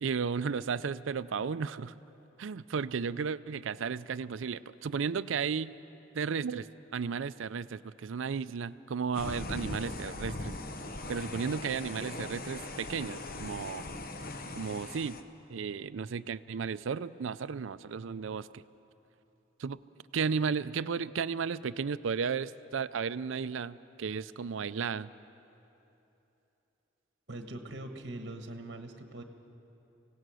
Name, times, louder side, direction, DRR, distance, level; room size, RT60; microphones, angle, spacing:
voice 1, 0.0-1.9 2.4-5.7 6.1-6.7 6.9-10.5 11.1-13.9 14.6-15.2 15.5-18.6 19.6-19.8 20.1-25.1, right 6 dB, 75° right, 15 dB, 0.4 m, -34 dB
sound 1, 9.1-15.2, left 2 dB, 45° left, 0.9 m, -40 dB
voice 2, 27.3-29.2, right 1 dB, 55° right, 6 dB, 1.3 m, -42 dB
25.0 x 17.0 x 6.3 m, 3.0 s
head